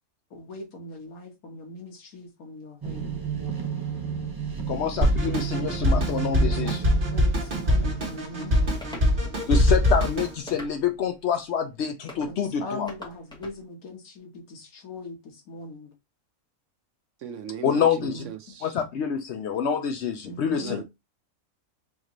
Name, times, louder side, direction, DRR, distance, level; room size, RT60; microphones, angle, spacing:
voice 1, 0.3-3.1 6.4-9.3 12.3-15.9 18.1-18.3 20.2-20.8, left 3 dB, 80° left, 1.6 m, -41 dB
sound 1, 2.8-10.3, right 7 dB, 20° right, 0.6 m, -33 dB
voice 2, 4.7-6.9 9.5-12.9 17.6-18.2 18.6-20.8, left 7 dB, 65° left, 0.7 m, -27 dB
Drum kit, 5.0-10.3, equal, 40° right, 1.3 m, -23 dB
sound 2, 8.8-9.1 10.5-11.0 12.1-12.3 12.9-13.6, left 1 dB, 5° left, 0.9 m, -42 dB
voice 3, 17.2-18.7 20.5-20.8, right 8 dB, 65° right, 0.9 m, -38 dB
5.0 x 2.5 x 3.0 m
omnidirectional pair, 1.5 m